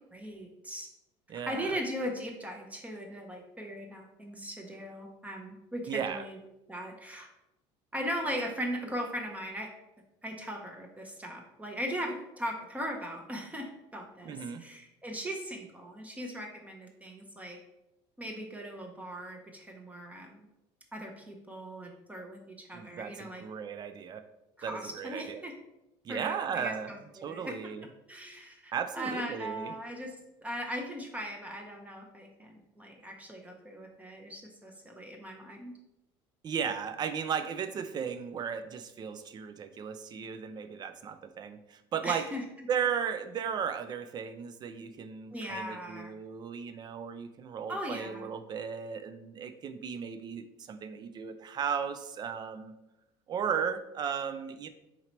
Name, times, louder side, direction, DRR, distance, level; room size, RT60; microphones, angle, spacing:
voice 1, 0.1-0.9 1.4-6.4 6.7-7.3 7.9-9.7 10.2-17.6 18.2-20.5 20.9-23.4 24.6-25.5 26.1-27.6 28.1-30.1 30.4-35.7 42.0-42.4 45.3-46.1 47.7-48.3, equal, 10° right, 1 dB, 0.8 m, -39 dB
voice 2, 1.3-1.8 5.9-6.2 14.2-14.6 22.7-24.2 24.6-25.4 26.0-26.9 27.2-27.9 28.7-29.8 36.4-42.2 42.7-52.7 53.3-54.7, right 7 dB, 35° right, 9 dB, 0.4 m, -35 dB
3.9 x 2.9 x 4.4 m, 0.92 s
supercardioid pair, 105°, 12 cm